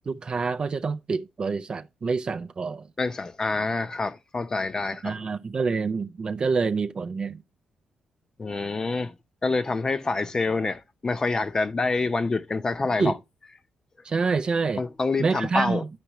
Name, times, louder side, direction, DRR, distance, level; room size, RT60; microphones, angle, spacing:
voice 1, 0.0-2.8 5.0-7.4 13.0-13.2 14.0-14.8 15.2-15.9, right 4 dB, 40° right, 0.4 m, -27 dB
voice 2, 3.0-5.2 8.4-9.1 9.4-13.1 14.8-15.8, left 3 dB, 30° left, 0.6 m, -27 dB
11.5 x 4.5 x 3.0 m
cardioid pair, 95°, 2 cm